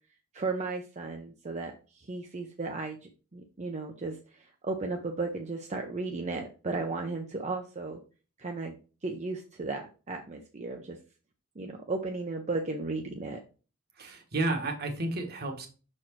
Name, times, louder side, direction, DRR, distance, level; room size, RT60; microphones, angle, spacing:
voice 1, 0.3-8.0 8.4-8.8 9.0-11.0 11.6-13.4, right 3 dB, 35° right, 3 dB, 0.7 m, -35 dB
voice 2, 14.0-15.7, right 2 dB, 50° right, 4 dB, 1.4 m, -31 dB
6.3 x 4.3 x 4.5 m, 0.35 s
head